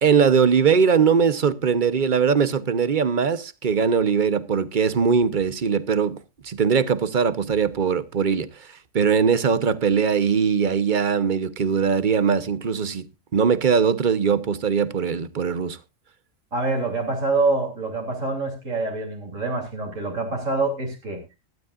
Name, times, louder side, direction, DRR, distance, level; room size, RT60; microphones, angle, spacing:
voice 1, 0.0-8.7 8.9-13.0 13.3-15.8, right 6 dB, 40° right, 1.0 m, -21 dB
voice 2, 16.5-21.2, right 3 dB, 80° right, 3.6 m, -25 dB
17.0 x 12.5 x 2.5 m
omnidirectional pair, 1.3 m